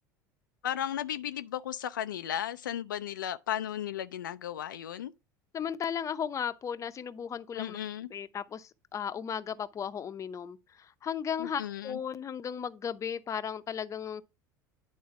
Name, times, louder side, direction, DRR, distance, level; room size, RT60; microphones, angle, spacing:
voice 1, 0.6-5.1 7.5-8.1 11.4-12.0, left 10 dB, 85° left, 0.4 m, -35 dB
voice 2, 5.5-7.8 8.1-14.2, left 8 dB, 30° left, 0.6 m, -35 dB
9.4 x 4.0 x 4.7 m
hypercardioid pair, 80°, 10 cm